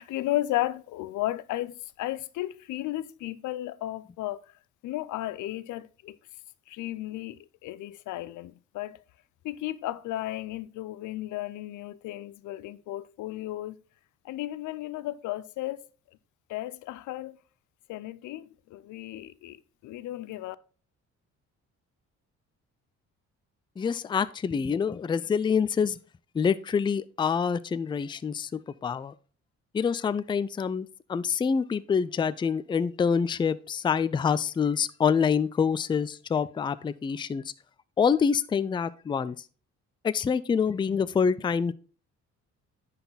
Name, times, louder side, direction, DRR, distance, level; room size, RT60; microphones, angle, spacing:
voice 1, 0.0-4.5 4.8-6.2 6.7-9.0 9.4-13.8 14.2-15.9 16.5-17.4 17.9-20.6, left 15 dB, 80° left, 0.5 m, -34 dB
voice 2, 23.8-26.0 26.3-29.1 29.7-37.5 38.0-39.4 40.0-41.7, left 6 dB, 15° left, 0.3 m, -26 dB
10.0 x 4.1 x 3.9 m
cardioid pair, 90°, 30 cm